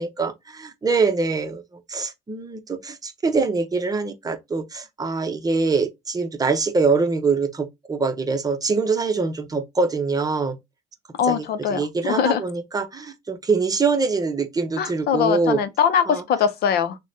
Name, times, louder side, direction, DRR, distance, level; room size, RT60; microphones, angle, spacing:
voice 1, 0.0-1.6 1.9-10.6 11.2-15.6 16.1-16.2, right 4 dB, 20° right, 0.8 m, -24 dB
voice 2, 11.2-12.4 14.8-17.0, left 8 dB, 70° left, 0.6 m, -22 dB
6.2 x 2.2 x 2.7 m
cardioid pair, 110°, 17 cm